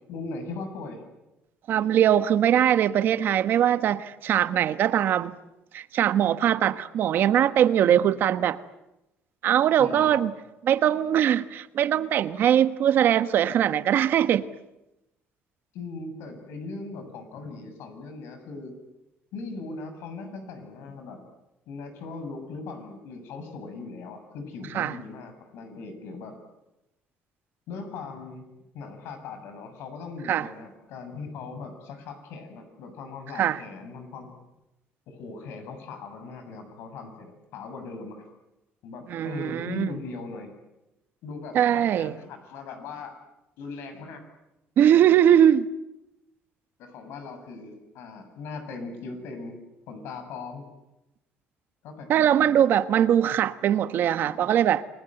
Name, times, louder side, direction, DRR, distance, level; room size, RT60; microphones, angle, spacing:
voice 1, 0.1-1.0 7.8-8.0 9.8-10.3 15.7-18.7 19.3-21.2 21.7-26.3 27.7-28.5 28.7-34.3 35.1-37.3 37.5-38.3 38.8-40.5 41.2-43.1 43.6-44.2 46.8-49.6 49.9-50.6 51.8-52.6, left 4 dB, 75° left, 7.5 m, -39 dB
voice 2, 1.7-5.4 5.7-8.6 9.4-10.3 10.6-14.5 24.7-24.9 30.3-30.5 33.3-33.6 39.1-39.9 41.5-42.2 44.8-45.7 52.1-54.8, right 10 dB, 55° right, 1.3 m, -21 dB
29.0 x 21.0 x 9.1 m
cardioid pair, 125°, 4 cm